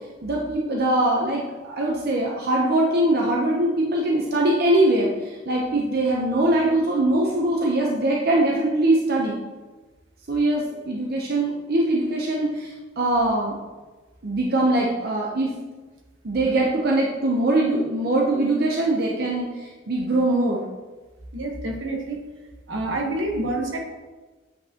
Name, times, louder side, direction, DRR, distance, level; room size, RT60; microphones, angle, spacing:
voice 1, 0.2-5.1 5.5-9.4 10.3-13.5 14.2-15.5 16.2-20.6, right 1 dB, 55° right, -1 dB, 0.7 m, -22 dB
voice 2, 21.3-22.2 22.7-23.8, right 2 dB, 80° right, 2 dB, 1.2 m, -27 dB
8.2 x 5.3 x 2.9 m, 1.3 s
head